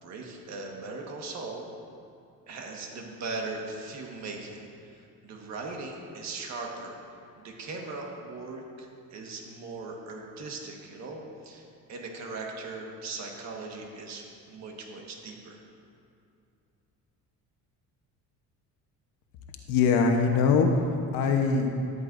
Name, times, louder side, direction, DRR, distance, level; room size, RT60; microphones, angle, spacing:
voice 1, 0.0-1.6 2.5-4.6 5.2-6.9 7.4-11.6 11.9-15.6, right 3 dB, 50° right, 0 dB, 1.5 m, -39 dB
voice 2, 19.7-21.9, left 4 dB, 85° left, 2 dB, 1.0 m, -23 dB
13.5 x 12.5 x 2.6 m, 2.5 s
cardioid pair, 160°, 35 cm